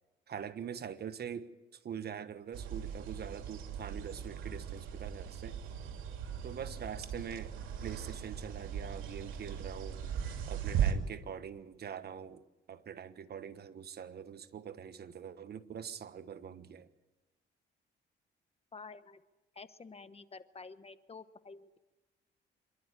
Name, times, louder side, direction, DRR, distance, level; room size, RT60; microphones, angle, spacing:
voice 1, 0.3-5.6 6.4-7.5 7.8-10.0 10.5-16.9, right 8 dB, 55° right, 1.3 m, -44 dB
sound 1, 2.5-10.9, right 8 dB, 90° right, 2.6 m, -38 dB
voice 2, 18.7-19.2 19.5-21.8, left 4 dB, 30° left, 1.1 m, -50 dB
27.0 x 12.0 x 9.8 m
cardioid pair, 90°, 20 cm